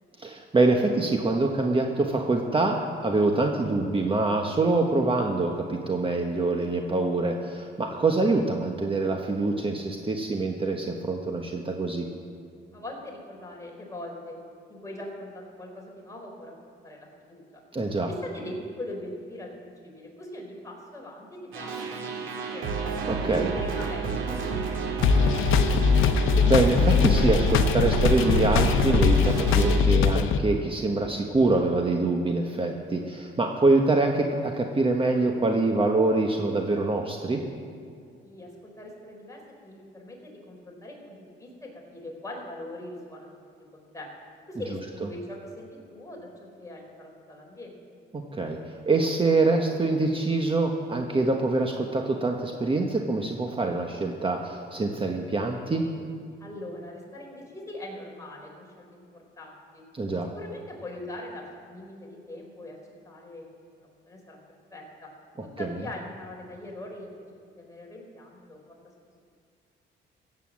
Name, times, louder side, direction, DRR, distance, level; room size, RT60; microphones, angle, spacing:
voice 1, 0.2-12.1 17.7-18.1 23.1-23.5 26.1-37.4 48.1-55.8 59.9-60.3, right 3 dB, 25° right, 3 dB, 1.2 m, -25 dB
voice 2, 12.7-14.4 14.7-17.6 18.1-21.8 22.1-22.2 22.5-22.9 23.3-24.9 25.2-25.3 38.2-43.4 43.7-44.1 44.5-47.8 56.4-59.8 60.3-62.8 63.0-64.4 64.7-65.1 65.6-67.2 67.6-68.8, left 1 dB, 15° left, -2 dB, 4.2 m, -41 dB
sound 1, 21.5-29.8, right 5 dB, 85° right, 2.1 m, -30 dB
sound 2, 25.0-30.4, left 6 dB, 90° left, 0.8 m, -21 dB
15.5 x 8.3 x 7.5 m, 2.3 s
cardioid pair, 90°, 20 cm